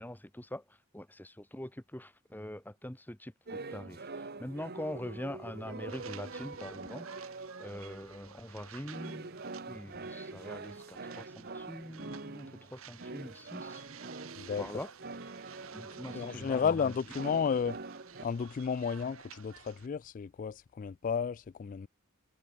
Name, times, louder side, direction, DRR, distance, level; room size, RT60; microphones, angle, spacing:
voice 1, 0.0-9.4 9.7-13.8 14.6-14.9 15.7-16.9, left 1 dB, 10° left, 1.5 m, -44 dB
sound 1, 3.5-8.3 8.8-18.2, right 3 dB, 50° right, 1.3 m, -45 dB
sound 2, 5.9-19.9, right 7 dB, 75° right, 1.6 m, -53 dB
voice 2, 16.1-17.8 18.2-21.9, left 6 dB, 40° left, 0.3 m, -32 dB
head